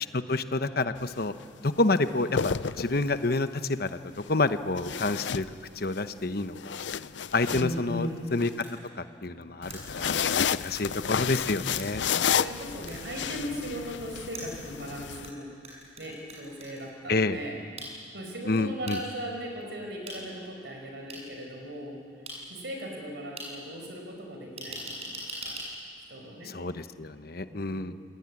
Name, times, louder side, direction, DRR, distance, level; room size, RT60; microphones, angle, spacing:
voice 1, 0.0-1.3 1.6-4.0 4.3-5.4 5.8-6.7 7.3-8.5 9.0-12.0 17.1-17.4 18.4-19.0 26.4-27.9, left 2 dB, 55° left, 10 dB, 1.0 m, -28 dB
sound 1, 1.0-1.2 2.1-3.3 4.8-6.0 6.4-8.5 9.6-15.3, left 7 dB, 75° left, 0.6 m, -31 dB
voice 2, 7.5-8.3 12.0-15.5 16.0-17.6 18.1-22.0 22.5-25.5 26.1-26.5 27.5-28.0, equal, 65° right, 2 dB, 5.1 m, -38 dB
sound 2, 8.6-8.7 9.7-9.8 10.8-10.9 11.8-11.9 12.9-13.0 14.3-15.3 15.6-16.8 17.8-17.9 18.9-19.0 20.1-20.2 21.1-21.2 22.3-22.4 23.4-23.5 24.6-25.7, right 2 dB, 35° right, 7.8 m, -40 dB
28.0 x 18.5 x 9.8 m, 2.2 s
head